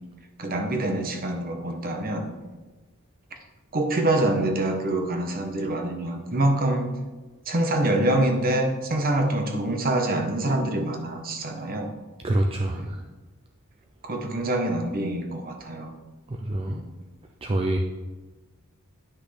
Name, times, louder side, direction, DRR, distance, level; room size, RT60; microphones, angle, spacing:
voice 1, 0.4-2.3 3.7-6.9 7.5-11.9 12.7-12.9 14.0-15.9 16.7-16.9, right 1 dB, 45° right, 4 dB, 1.0 m, -25 dB
voice 2, 12.2-13.0 16.3-16.8 17.4-17.8, right 1 dB, 25° right, 2 dB, 0.4 m, -26 dB
10.0 x 5.9 x 3.3 m, 1.2 s
head